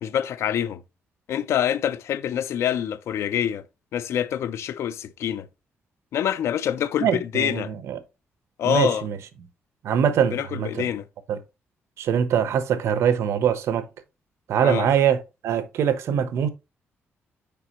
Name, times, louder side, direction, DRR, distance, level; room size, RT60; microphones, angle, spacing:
voice 1, 0.0-0.8 1.3-3.6 3.9-5.5 6.1-7.7 8.6-9.1 10.3-11.1 14.6-14.9, left 10 dB, 75° left, 0.6 m, -26 dB
voice 2, 7.0-8.0 8.6-9.2 9.8-10.8 11.3-11.4 12.0-13.8 14.5-16.5, right 8 dB, 80° right, 0.9 m, -23 dB
6.8 x 5.0 x 2.9 m
cardioid pair, 130°, 5 cm